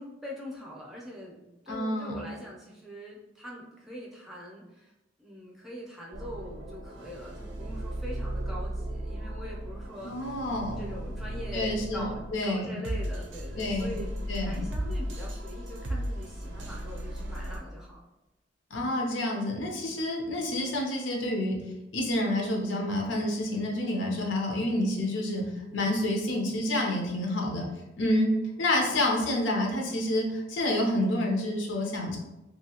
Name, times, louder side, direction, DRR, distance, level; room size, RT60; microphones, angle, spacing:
voice 1, 0.0-4.9 5.2-10.3 10.8-18.0 28.0-28.2, equal, ahead, -4 dB, 0.6 m, -43 dB
voice 2, 1.7-2.2 10.0-10.8 11.5-12.1 12.3-12.7 13.6-14.0 14.3-14.6 18.7-21.6 21.9-27.7 28.0-32.2, left 1 dB, 80° left, 0 dB, 0.7 m, -28 dB
sound 1, 6.1-12.4 12.8-17.6, right 1 dB, 80° right, 0.5 m, -36 dB
2.8 x 2.7 x 2.8 m, 0.97 s
head